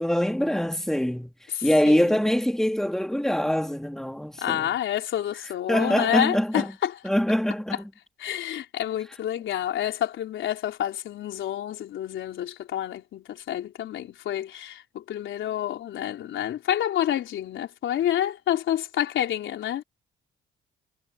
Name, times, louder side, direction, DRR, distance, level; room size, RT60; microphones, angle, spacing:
voice 1, 0.0-1.3 1.6-4.7 5.7-6.7 7.0-7.8, equal, ahead, 3.2 m, -24 dB
voice 2, 1.5-2.3 4.4-7.0 8.2-19.8, left 11 dB, 75° left, 4.1 m, -28 dB
cardioid pair, 90°, 20 cm